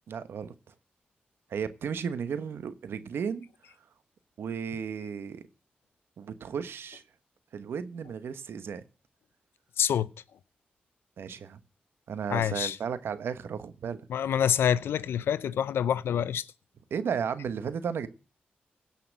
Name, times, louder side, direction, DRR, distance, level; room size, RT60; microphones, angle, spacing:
voice 1, 0.1-0.7 1.5-3.5 4.4-5.4 6.2-7.0 7.5-8.8 11.2-11.6 12.1-14.0 16.9-18.1, right 7 dB, 80° right, 1.1 m, -34 dB
voice 2, 9.8-10.1 12.3-12.8 14.1-16.5, left 9 dB, 85° left, 0.6 m, -26 dB
16.5 x 5.8 x 7.6 m
cardioid pair, 45°, 4 cm